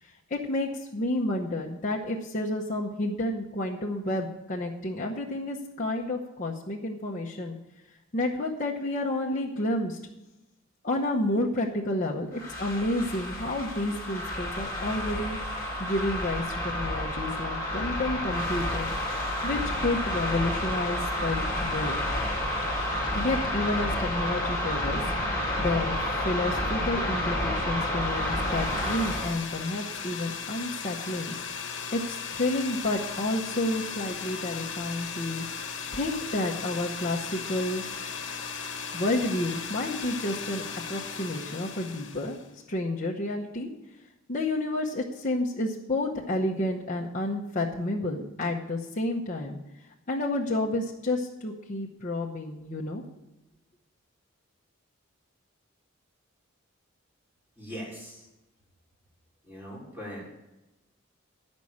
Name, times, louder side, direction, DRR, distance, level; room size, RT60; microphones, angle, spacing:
voice 1, 0.0-7.6 8.1-10.0 10.8-15.4 15.8-18.9 19.4-21.9 23.1-25.0 25.3-31.3 31.9-35.4 35.9-37.8 38.9-42.4 42.7-43.7 44.3-49.6 50.1-53.0, left 1 dB, 40° left, -3 dB, 0.8 m, -30 dB
sound 1, 12.3-29.3, left 1 dB, 15° left, 2.4 m, -30 dB
sound 2, 28.0-42.5, left 6 dB, 60° left, 1.2 m, -37 dB
voice 2, 57.6-58.3 59.4-60.3, equal, 10° right, -5 dB, 3.6 m, -40 dB
11.0 x 5.3 x 8.5 m, 0.99 s
head